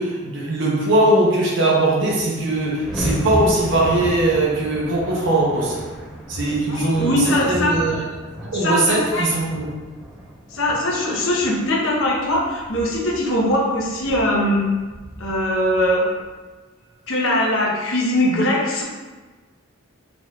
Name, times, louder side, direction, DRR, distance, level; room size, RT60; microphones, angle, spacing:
voice 1, 0.0-5.9 6.3-8.0 8.4-9.7, right 2 dB, 60° right, -4 dB, 0.8 m, -20 dB
sound 1, 2.1-16.3, equal, ahead, 0.7 m, -34 dB
voice 2, 6.7-7.7 8.6-9.3 10.5-14.7 15.2-16.1 17.1-18.8, left 1 dB, 75° left, -3 dB, 0.9 m, -21 dB
4.8 x 3.7 x 2.3 m, 1.3 s
head